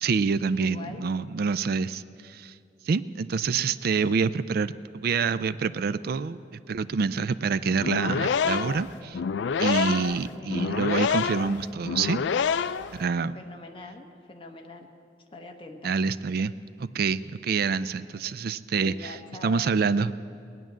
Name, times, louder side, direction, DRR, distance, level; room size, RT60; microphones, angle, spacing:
voice 1, 0.0-2.5 2.8-9.2 9.6-12.2 12.9-13.4 15.8-16.5 16.8-20.1, right 5 dB, 55° right, 14 dB, 0.4 m, -27 dB
voice 2, 0.6-1.0 10.2-10.8 13.3-14.9 15.3-16.0 18.8-19.7, left 2 dB, 30° left, 3 dB, 1.1 m, -43 dB
sound 1, 7.7-13.0, left 6 dB, 80° left, 0.4 m, -27 dB
18.5 x 9.3 x 7.4 m, 2.5 s
head